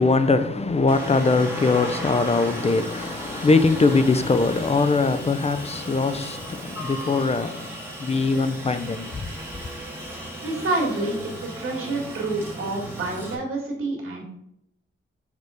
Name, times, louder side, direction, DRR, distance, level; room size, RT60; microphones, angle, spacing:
voice 1, 0.0-9.3, left 3 dB, 30° left, 0.5 m, -22 dB
Aircraft, 0.9-13.3, right 1 dB, 10° right, 1.8 m, -36 dB
voice 2, 10.4-14.2, right 2 dB, 90° right, 2.1 m, -28 dB
6.6 x 3.5 x 4.9 m
wide cardioid pair, 115°, 21 cm